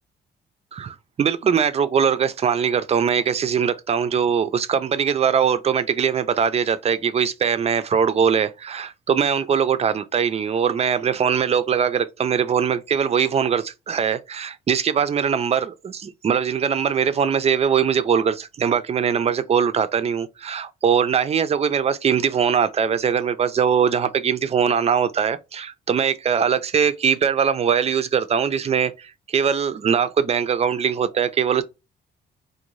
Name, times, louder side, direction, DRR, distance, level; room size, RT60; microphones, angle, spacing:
voice 1, 0.7-31.6, right 7 dB, 30° right, 0.4 m, -21 dB
2.6 x 2.1 x 3.0 m
cardioid pair, 90°, 20 cm